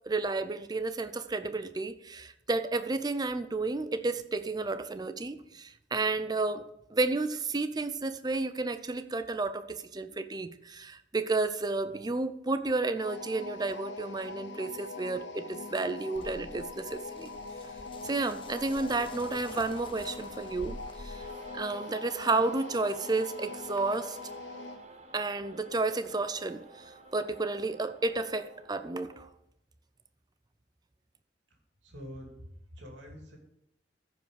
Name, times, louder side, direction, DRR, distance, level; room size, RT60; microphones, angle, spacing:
voice 1, 0.0-17.3 18.0-21.2 21.5-24.2 25.1-26.6 27.1-29.3, right 3 dB, 20° right, 11 dB, 0.5 m, -31 dB
sound 1, 13.0-24.8, left 3 dB, 70° left, 1.0 m, -43 dB
sound 2, 16.2-21.6, left 2 dB, 30° left, 0.6 m, -47 dB
sound 3, 21.1-29.3, right 2 dB, 40° right, 1.0 m, -51 dB
voice 2, 31.8-33.4, equal, 85° right, 1 dB, 2.6 m, -46 dB
14.0 x 5.2 x 4.9 m, 0.81 s
head